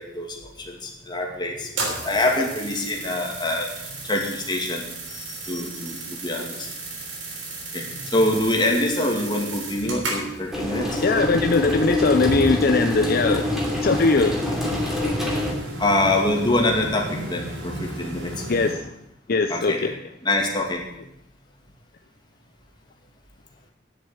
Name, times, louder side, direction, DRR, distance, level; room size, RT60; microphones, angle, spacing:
voice 1, 0.0-6.7 7.7-11.0 15.8-18.5 19.5-19.9 20.2-20.8, left 1 dB, 25° left, 1 dB, 2.3 m, -25 dB
sound 1, 1.7-18.7, right 2 dB, 90° right, 3.4 m, -34 dB
sound 2, 10.5-15.5, left 1 dB, ahead, 2.8 m, -26 dB
voice 2, 11.0-13.5 13.8-14.4 18.5-19.0 19.3-19.9, left 3 dB, 55° left, 7 dB, 0.6 m, -20 dB
9.9 x 7.7 x 9.2 m, 0.84 s
head